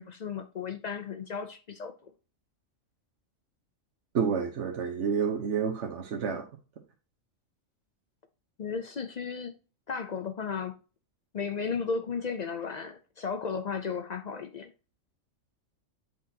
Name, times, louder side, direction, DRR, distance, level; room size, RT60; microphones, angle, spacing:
voice 1, 0.0-2.1 8.6-9.5 9.9-10.8 11.3-14.7, left 5 dB, 60° left, 0.4 m, -34 dB
voice 2, 4.1-6.5, right 6 dB, 65° right, 1.2 m, -29 dB
7.7 x 5.4 x 2.7 m
omnidirectional pair, 1.3 m